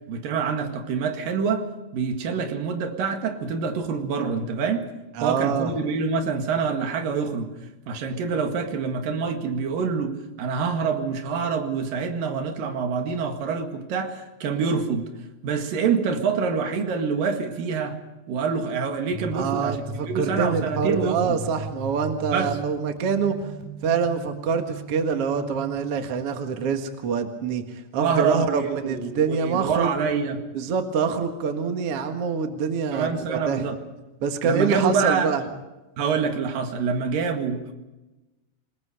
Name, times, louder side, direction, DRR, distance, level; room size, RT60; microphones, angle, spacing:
voice 1, 0.1-1.7 1.9-4.9 5.2-7.5 7.9-15.1 15.4-18.0 18.3-21.4 22.3-22.6 28.0-30.4 32.9-33.8 34.4-35.4 36.0-37.7, right 5 dB, 75° right, 5 dB, 3.6 m, -26 dB
voice 2, 5.2-5.7 19.3-23.5 23.8-29.9 30.5-33.6 34.2-35.4, right 6 dB, 50° right, 5 dB, 2.3 m, -25 dB
sound 1, 19.1-26.0, right 4 dB, 10° right, 6.4 m, -37 dB
27.5 x 20.5 x 5.0 m, 1.1 s
omnidirectional pair, 4.1 m